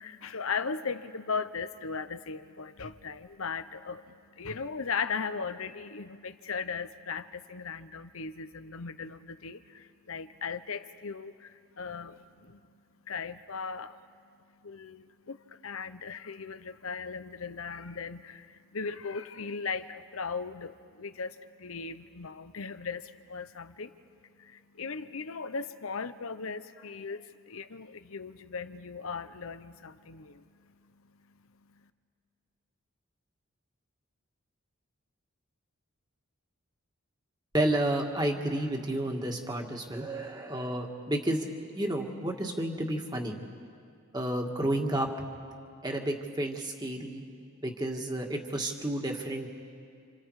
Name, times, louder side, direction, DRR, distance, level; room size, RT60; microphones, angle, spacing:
voice 1, 0.0-12.6 13.0-14.1 14.5-24.0 24.4-31.0 31.7-31.8, left 5 dB, 75° left, 11 dB, 0.9 m, -38 dB
voice 2, 37.5-41.5 41.7-43.3 44.1-45.1 45.8-47.2 47.6-49.5, right 1 dB, 20° right, 2 dB, 2.0 m, -31 dB
30.0 x 27.0 x 4.9 m, 2.3 s
head